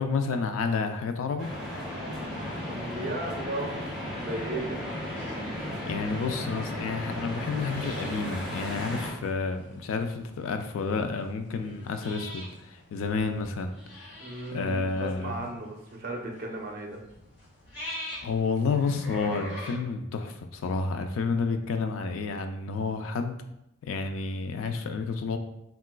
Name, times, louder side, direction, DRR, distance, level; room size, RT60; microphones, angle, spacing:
voice 1, 0.0-1.5 5.6-14.2 14.5-15.6 18.2-23.4 23.8-25.4, left 4 dB, 75° left, 7 dB, 0.3 m, -30 dB
sound 1, 1.4-9.1, left 1 dB, 5° right, 0.8 m, -35 dB
voice 2, 2.7-3.7 4.2-4.8 14.2-17.0, right 2 dB, 45° right, 0 dB, 0.5 m, -35 dB
sound 2, 3.6-19.7, left 1 dB, 50° left, 1.2 m, -45 dB
3.8 x 2.3 x 2.2 m, 0.83 s
head